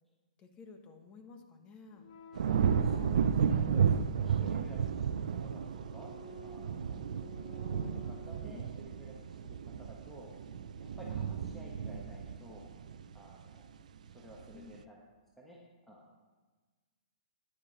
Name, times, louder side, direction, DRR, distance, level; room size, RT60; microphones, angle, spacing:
voice 1, 0.4-2.1 8.5-8.7 14.5-14.8, left 4 dB, 25° left, 5 dB, 1.3 m, -53 dB
sound 1, 1.9-8.9, equal, 50° left, 1.7 m, -53 dB
sound 2, 2.4-13.6 14.1-14.5, right 7 dB, 75° right, 0.5 m, -33 dB
voice 2, 2.5-6.1 6.4-7.0 7.7-10.3 10.8-12.7 13.1-13.7 14.1-15.0 15.4-15.6 15.9-16.0, equal, 5° left, -4 dB, 1.4 m, -53 dB
10.0 x 9.5 x 5.3 m, 1.3 s
hypercardioid pair, 140°, 4 cm